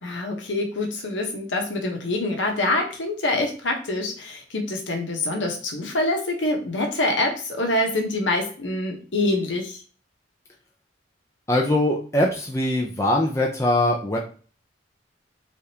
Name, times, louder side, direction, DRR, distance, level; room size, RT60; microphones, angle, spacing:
voice 1, 0.0-9.8, left 2 dB, 90° left, 2 dB, 1.0 m, -25 dB
voice 2, 11.5-14.2, left 1 dB, 15° left, -1 dB, 0.4 m, -22 dB
3.5 x 3.4 x 2.8 m, 0.40 s
head